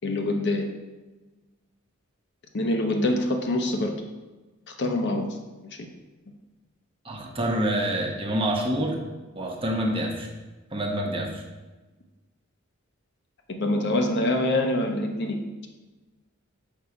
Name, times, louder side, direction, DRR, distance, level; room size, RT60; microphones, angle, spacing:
voice 1, 0.0-0.6 2.5-4.0 4.8-5.3 13.5-15.7, left 1 dB, 55° left, 4 dB, 0.8 m, -25 dB
voice 2, 7.0-9.0 9.3-10.3 10.7-11.4, right 1 dB, 25° right, 1 dB, 1.0 m, -27 dB
5.5 x 5.5 x 4.8 m, 1.2 s
head